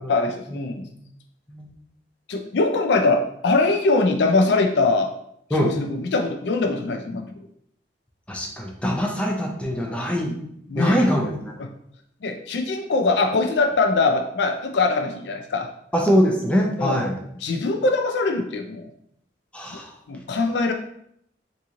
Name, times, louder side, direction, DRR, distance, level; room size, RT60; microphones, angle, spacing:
voice 1, 0.1-0.8 2.3-5.1 5.6-7.3 9.9-10.0 10.7-11.0 11.6-11.7 12.2-15.7 16.8-17.0 17.4-18.9 20.1-20.7, left 3 dB, 70° left, 5 dB, 0.4 m, -22 dB
voice 2, 8.3-10.4 10.7-11.6 15.9-17.2 19.5-19.9, equal, 5° left, -1 dB, 0.5 m, -22 dB
2.9 x 2.6 x 3.6 m, 0.70 s
head